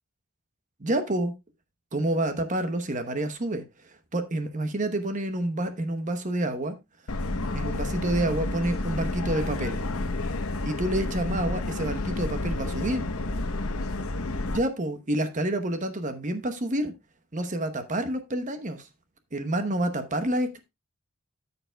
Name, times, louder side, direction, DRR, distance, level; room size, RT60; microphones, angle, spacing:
voice 1, 0.8-1.3 1.9-3.6 4.1-6.8 7.5-9.8 10.6-13.0 14.5-16.9 17.3-18.9 19.3-20.6, right 1 dB, 35° right, 9 dB, 0.9 m, -28 dB
Subway metro underground, 7.1-14.6, left 2 dB, 70° left, 0.9 m, -30 dB
13.5 x 6.8 x 2.2 m, 0.22 s
head